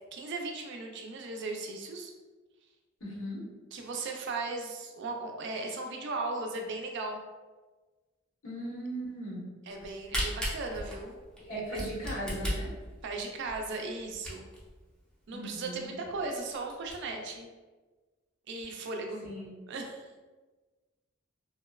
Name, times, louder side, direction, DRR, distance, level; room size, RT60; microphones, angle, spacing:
voice 1, 0.1-2.1 3.7-7.2 9.7-11.2 13.0-14.5 15.3-17.5 18.5-19.2 19.7-20.1, right 3 dB, 60° right, 2 dB, 0.4 m, -37 dB
voice 2, 3.0-3.4 8.4-9.4 11.4-12.7 15.3-15.9 19.2-19.6, right 1 dB, 85° left, -6 dB, 1.1 m, -38 dB
Camera, 9.7-14.7 15.2-15.3 15.5-15.6 16.1-16.2 16.5-16.9, equal, 5° left, 0.5 m, -36 dB
2.8 x 2.0 x 2.3 m, 1.3 s
head